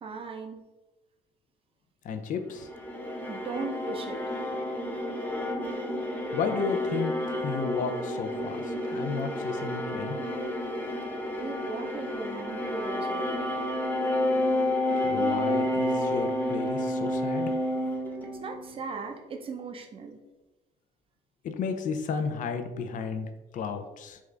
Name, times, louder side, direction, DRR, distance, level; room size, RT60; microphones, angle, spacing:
voice 1, 0.0-0.6 3.3-4.2 11.2-13.4 18.2-20.2, right 4 dB, 35° right, 3 dB, 0.6 m, -38 dB
voice 2, 2.0-2.7 6.3-7.1 7.4-10.2 15.0-17.5 21.4-24.2, left 5 dB, 50° left, 7 dB, 0.4 m, -33 dB
sound 1, 2.6-18.9, left 1 dB, 10° left, 0.6 m, -30 dB
3.6 x 2.4 x 3.2 m, 1.1 s
cardioid pair, 110°, 17 cm